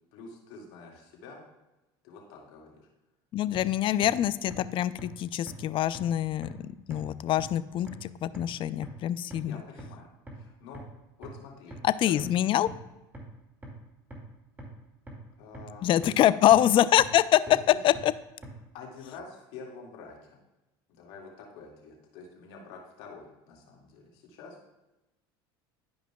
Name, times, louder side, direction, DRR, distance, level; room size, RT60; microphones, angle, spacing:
voice 1, 0.1-1.4 2.0-2.9 9.4-10.1 10.3-10.8 11.2-11.8 12.0-12.1 15.4-16.4 17.5-17.8 18.7-20.4 20.9-24.6, left 4 dB, 70° left, -1 dB, 2.0 m, -47 dB
voice 2, 3.3-9.6 11.8-12.7 15.8-17.4 17.8-18.1, left 12 dB, 45° left, 16 dB, 0.4 m, -25 dB
sound 1, 3.5-3.6 4.0-4.1 4.5-4.6 5.0-5.1 5.5-5.6 5.9-6.0 6.4-6.5 6.9-7.0 7.4-7.5 7.9-8.0 8.3-8.4 8.8-8.9 9.3-9.4 9.8-9.9 10.3-10.4 10.7-10.8 11.2-11.3 11.7-11.8 12.2-12.3 12.7-12.8 13.1-13.2 13.6-13.7 14.1-14.2 14.6-14.7 15.1-15.2 15.5-15.6 16.0-16.1 16.5-16.6 17.0-17.1 17.5-17.6 17.9-18.0 18.4-18.5, equal, 15° right, 2.1 m, -42 dB
11.5 x 5.1 x 2.3 m, 1.0 s
supercardioid pair, 90°, 12 cm